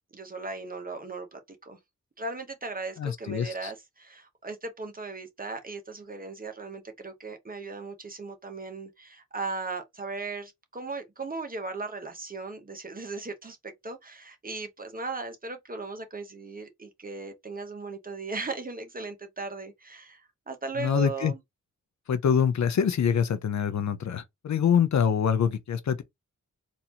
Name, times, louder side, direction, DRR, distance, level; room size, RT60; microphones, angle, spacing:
voice 1, 0.1-1.8 2.2-21.4, right 3 dB, 25° right, 0.9 m, -37 dB
voice 2, 3.0-3.7 20.8-21.3 22.1-26.0, left 7 dB, 60° left, 0.6 m, -25 dB
4.1 x 2.5 x 2.8 m
wide cardioid pair, 110°, 32 cm